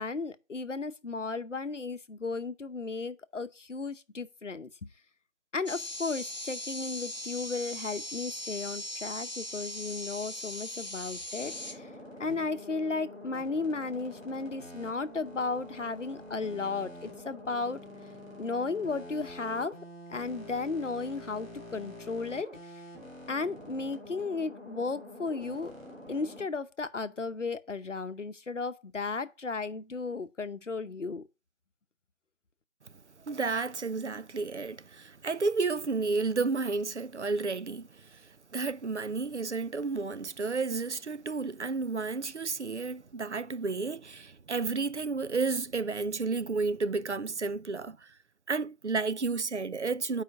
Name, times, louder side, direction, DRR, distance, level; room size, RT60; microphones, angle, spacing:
voice 1, 0.0-4.9 5.5-11.9 12.2-17.8 18.4-19.8 20.1-22.5 23.3-25.7 26.1-31.2, left 4 dB, 65° left, 0.9 m, -34 dB
sound 1, 5.7-11.7, left 1 dB, 35° left, 1.0 m, -39 dB
sound 2, 11.4-26.5, left 1 dB, 5° right, 3.0 m, -46 dB
voice 2, 33.3-48.1 48.5-50.2, right 4 dB, 60° right, 0.5 m, -32 dB
8.4 x 5.0 x 4.9 m
figure-of-eight pair, 165°, 40 cm